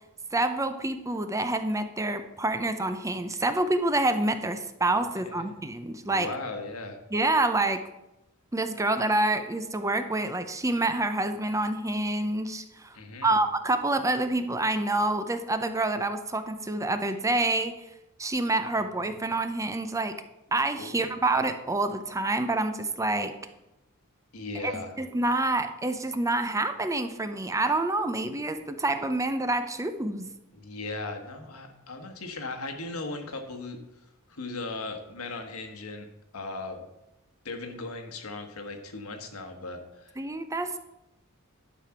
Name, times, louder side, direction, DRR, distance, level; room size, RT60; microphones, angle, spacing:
voice 1, 0.3-6.3 7.1-7.8 8.5-13.0 13.2-17.8 18.2-20.1 20.5-23.3 24.6-30.3 40.2-40.8, right 2 dB, 15° right, 9 dB, 0.6 m, -27 dB
voice 2, 5.0-5.5 6.0-7.0 12.9-13.3 20.8-21.2 24.3-25.0 30.5-33.8 34.3-36.1 36.3-36.8 37.4-40.1, left 3 dB, 90° left, 6 dB, 1.4 m, -38 dB
11.5 x 5.1 x 5.9 m, 0.92 s
head